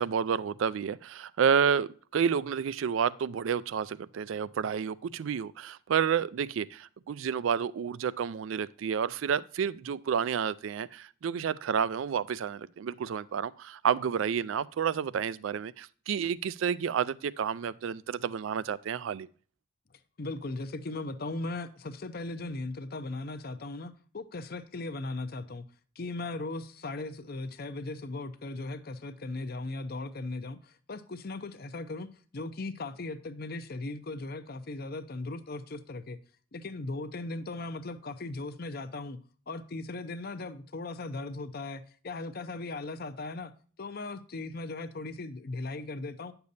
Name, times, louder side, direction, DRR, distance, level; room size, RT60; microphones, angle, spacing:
voice 1, 0.0-19.3, right 7 dB, 80° right, 0.4 m, -30 dB
voice 2, 20.2-25.6 26.0-36.2 36.5-39.2 39.5-43.5 43.8-46.3, left 2 dB, 50° left, 0.6 m, -38 dB
9.3 x 6.8 x 2.6 m
head